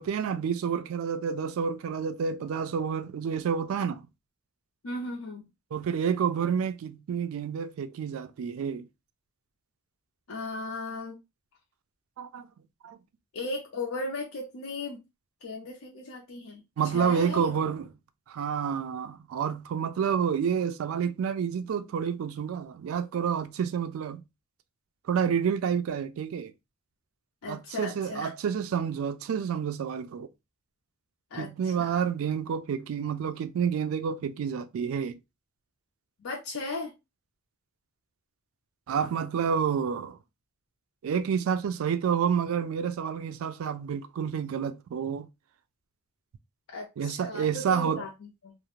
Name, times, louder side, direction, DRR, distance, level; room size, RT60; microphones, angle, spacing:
voice 1, 0.0-4.0 5.7-8.8 12.2-12.5 12.8-13.0 16.8-17.9 18.3-24.2 25.1-26.5 27.5-30.3 31.4-35.2 38.9-40.2 41.0-45.3 47.0-48.0, right 7 dB, 75° right, 0.3 m, -29 dB
voice 2, 4.8-5.4 10.3-11.2 13.3-15.0 15.4-16.6 16.9-17.5 18.4-18.5 27.4-28.3 31.3-32.0 36.2-36.9 46.7-48.5, left 2 dB, 80° left, 0.5 m, -36 dB
2.4 x 2.0 x 2.8 m
head